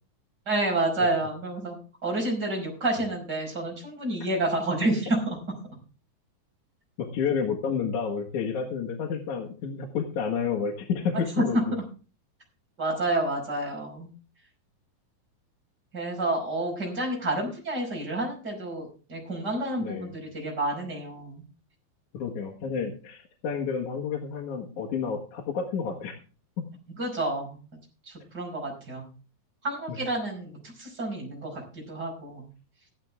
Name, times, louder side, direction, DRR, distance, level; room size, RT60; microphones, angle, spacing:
voice 1, 0.5-5.4 12.8-14.1 15.9-21.4 27.0-27.6 28.3-29.0 29.6-32.5, right 2 dB, 25° right, 0 dB, 5.5 m, -29 dB
voice 2, 7.0-11.8 19.8-20.2 22.1-26.2 29.9-30.0, left 6 dB, 55° left, -1 dB, 2.7 m, -30 dB
14.5 x 12.0 x 3.5 m, 0.35 s
omnidirectional pair, 4.5 m